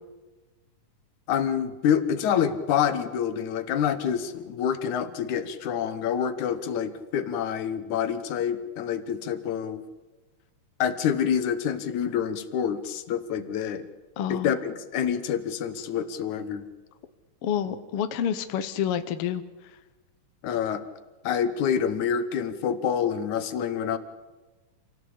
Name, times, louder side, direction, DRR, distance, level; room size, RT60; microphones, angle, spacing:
voice 1, 1.3-9.8 10.8-13.8 14.3-16.7 20.4-20.8 21.2-24.0, left 8 dB, 80° left, 11 dB, 2.6 m, -27 dB
voice 2, 14.2-14.5 17.4-19.8, left 9 dB, 60° left, 10 dB, 1.7 m, -29 dB
27.0 x 17.0 x 8.6 m, 1.2 s
omnidirectional pair, 3.4 m